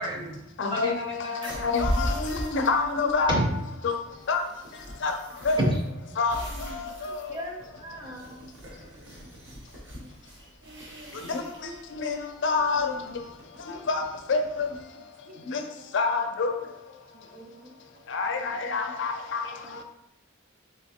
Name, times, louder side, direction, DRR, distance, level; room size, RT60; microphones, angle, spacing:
voice 1, 0.0-1.6 3.3-3.5 5.6-5.8 6.4-6.9 7.3-8.5 17.3-17.5 19.4-19.8, equal, 25° right, 0.7 m, -32 dB
voice 2, 0.6-3.4 3.8-5.7 6.2-7.4 7.9-8.3 11.1-19.8, left 4 dB, 65° left, 0.4 m, -29 dB
sound 1, 1.4-13.3, equal, 60° right, 1.0 m, -37 dB
voice 3, 3.9-4.5 7.0-7.1 8.3-9.6 10.0-10.2 10.6-11.2 15.0-15.5 17.1-18.3 19.8-19.9, right 2 dB, 45° right, 0.3 m, -54 dB
sound 2, 6.1-6.3 7.6-9.7 10.7-10.8 11.1-11.2 11.9-12.1 12.6-14.8, equal, 90° right, 0.8 m, -52 dB
3.6 x 3.2 x 2.8 m
head